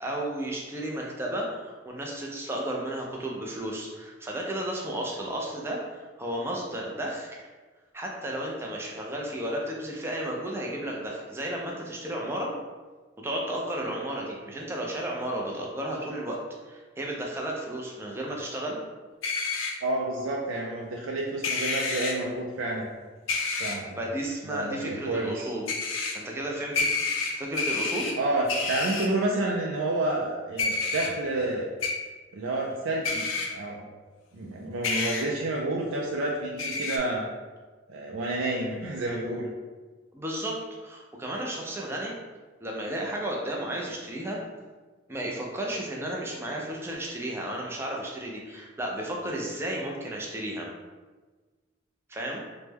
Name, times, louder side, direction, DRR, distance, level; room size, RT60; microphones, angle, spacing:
voice 1, 0.0-7.5 7.9-12.5 13.2-16.4 16.7-18.8 23.7-25.7 26.1-28.1 40.1-40.6 40.8-42.1 42.6-44.4 45.1-50.7 52.1-52.4, right 1 dB, 10° right, -2 dB, 0.4 m, -33 dB
sound 1, 19.2-19.7 21.4-22.1 23.3-23.7 25.7-26.1 26.7-28.1 28.5-29.1 30.6-31.1 31.8-31.9 33.0-33.5 34.8-35.2 36.6-37.0, left 4 dB, 80° left, 0.5 m, -28 dB
voice 2, 19.8-22.9 23.6-24.0 24.4-25.5 28.2-31.7 32.3-33.2 33.5-33.8 34.3-37.2 37.9-39.5, right 2 dB, 85° right, -2 dB, 0.4 m, -29 dB
3.0 x 2.1 x 3.4 m, 1.3 s
head